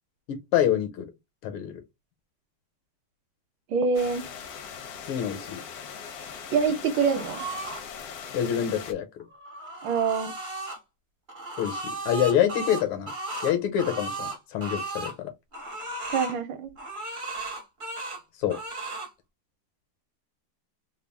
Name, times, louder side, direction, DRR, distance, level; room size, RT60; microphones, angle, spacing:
voice 1, 0.3-1.1 1.4-1.8 5.1-5.6 8.3-9.3 11.6-13.1 13.4-15.3 18.4-18.6, left 10 dB, 85° left, 1.7 m, -26 dB
voice 2, 3.7-4.2 6.5-7.4 9.8-10.3 16.1-16.7, right 5 dB, 70° right, 1.4 m, -25 dB
sound 1, 3.9-8.9, left 7 dB, 65° left, 0.9 m, -40 dB
sound 2, 7.0-7.8 9.2-10.8 11.3-15.1 15.5-16.4 16.8-18.2 18.5-19.1, right 2 dB, 40° right, 0.7 m, -35 dB
3.7 x 2.3 x 3.4 m
omnidirectional pair, 2.3 m